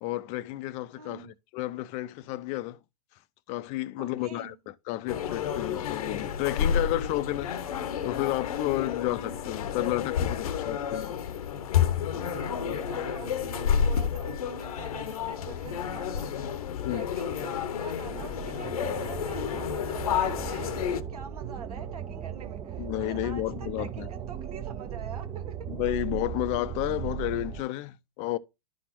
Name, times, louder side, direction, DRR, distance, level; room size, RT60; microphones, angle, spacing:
voice 1, 0.0-2.8 3.5-7.5 8.0-11.2 16.8-17.1 22.8-24.1 25.7-28.4, left 16 dB, 35° left, 0.5 m, -31 dB
voice 2, 1.0-1.3 4.0-4.6 7.5-8.0 12.1-16.6 16.9-25.6, right 6 dB, 80° right, 1.5 m, -45 dB
sound 1, 5.1-21.0, left 8 dB, 70° left, 0.9 m, -30 dB
sound 2, 18.0-27.6, right 10 dB, 20° right, 0.6 m, -37 dB
11.5 x 4.2 x 2.9 m
hypercardioid pair, 120°, 19 cm